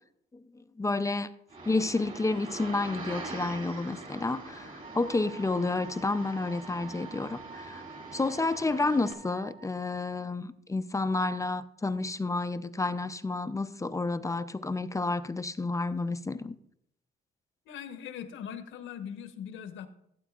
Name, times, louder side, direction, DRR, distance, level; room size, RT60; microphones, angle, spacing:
voice 1, 0.8-1.3 1.7-7.8 8.1-16.5, left 3 dB, 15° left, 0.4 m, -30 dB
sound 1, 1.5-9.1, right 2 dB, 40° right, 2.2 m, -43 dB
Wind instrument woodwind instrument, 4.8-9.7, right 5 dB, 60° right, 0.8 m, -48 dB
voice 2, 17.7-19.9, left 8 dB, 80° left, 1.1 m, -40 dB
16.0 x 8.3 x 2.4 m
cardioid pair, 90°, 20 cm